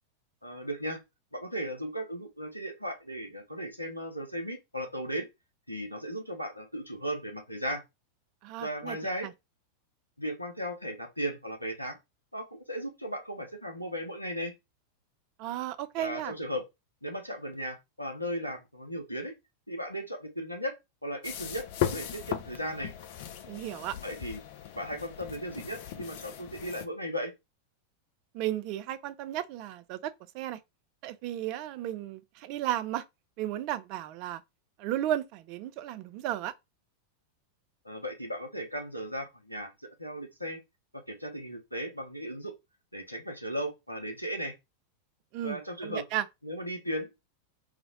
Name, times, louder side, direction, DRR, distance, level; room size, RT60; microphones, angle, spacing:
voice 1, 0.4-1.0 1.3-5.3 5.7-7.8 8.6-9.3 10.2-12.0 12.3-14.5 16.0-16.6 17.0-19.3 19.7-20.8 21.0-22.9 24.0-24.4 24.7-27.3 37.8-39.7 40.0-40.6 40.9-42.5 42.9-44.5 45.4-46.0 46.4-47.2, equal, 90° left, 0.7 m, -36 dB
voice 2, 8.4-9.0 9.2-9.3 15.4-16.3 23.5-24.0 28.3-30.6 31.0-33.0 33.4-34.4 34.8-36.5 45.3-46.2, right 12 dB, 45° right, 0.3 m, -34 dB
sound 1, 21.2-26.9, left 10 dB, 50° left, 0.4 m, -37 dB
2.5 x 2.0 x 3.8 m
figure-of-eight pair, 90°, 0 cm